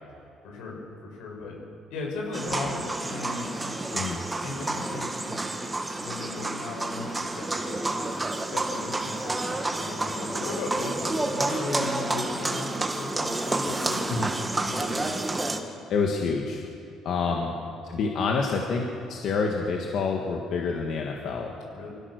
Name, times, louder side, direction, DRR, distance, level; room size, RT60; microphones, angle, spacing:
voice 1, 0.4-1.5 1.9-3.6 4.4-5.4 5.8-8.1 8.5-14.2 14.6-15.2 17.2-17.4 21.7-21.9, left 3 dB, 85° left, 0 dB, 6.7 m, -37 dB
sound 1, 2.3-15.6, right 2 dB, 10° right, 1.3 m, -30 dB
voice 2, 3.9-4.2 14.1-14.3 15.9-16.6 17.0-17.5 17.8-21.5, left 4 dB, 50° left, 0 dB, 1.8 m, -27 dB
25.5 x 15.5 x 6.6 m, 2.8 s
cardioid pair, 165°, 0 cm